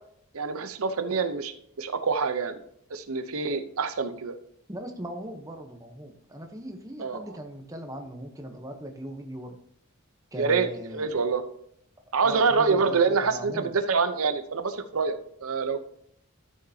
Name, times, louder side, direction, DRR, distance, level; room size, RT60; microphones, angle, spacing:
voice 1, 0.3-2.6 2.9-4.3 7.0-7.2 10.4-11.4 12.1-15.8, right 5 dB, 75° right, 9 dB, 0.7 m, -26 dB
voice 2, 4.7-9.6 10.3-11.2 12.2-13.7, equal, 15° right, 4 dB, 0.8 m, -39 dB
12.5 x 6.5 x 2.8 m, 0.69 s
head